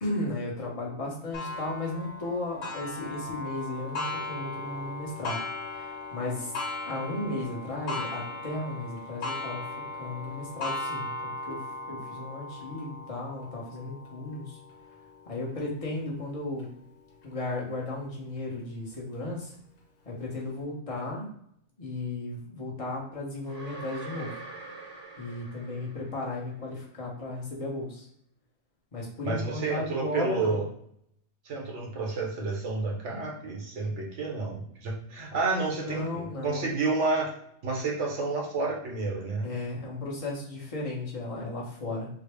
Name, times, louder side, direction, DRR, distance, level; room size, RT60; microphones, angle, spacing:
voice 1, 0.0-5.4 5.7-6.5 6.9-9.6 10.0-14.6 15.3-16.7 17.2-19.5 20.1-21.3 21.8-24.3 25.2-28.1 28.9-30.6 35.7-36.7 39.4-42.1, left 2 dB, 30° left, -3 dB, 0.9 m, -35 dB
Clock, 1.3-16.6 17.2-17.3 17.9-18.0 18.9-19.0, left 2 dB, 85° left, 1.2 m, -38 dB
sound 1, 23.5-26.6, right 3 dB, 25° right, 0.7 m, -44 dB
voice 2, 29.2-30.6 31.5-37.3 37.6-39.5, right 3 dB, 75° right, 0 dB, 1.2 m, -30 dB
3.7 x 2.0 x 3.3 m, 0.68 s
omnidirectional pair, 1.3 m